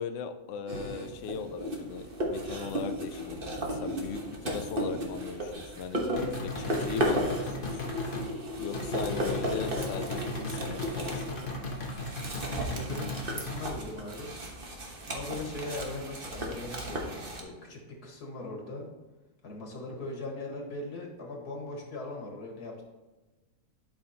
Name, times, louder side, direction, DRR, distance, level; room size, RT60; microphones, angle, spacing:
voice 1, 0.0-6.0 6.4-8.0 8.6-11.3, left 6 dB, 65° left, 8 dB, 0.9 m, -39 dB
sound 1, 0.7-17.4, equal, 35° right, 1.4 m, -35 dB
sound 2, 6.2-8.3 8.7-13.7, left 2 dB, 35° left, 1.2 m, -37 dB
voice 2, 12.5-14.3 15.1-18.9 19.4-22.8, left 2 dB, 90° left, 0 dB, 2.2 m, -40 dB
12.0 x 5.7 x 2.9 m, 1.2 s
omnidirectional pair, 1.6 m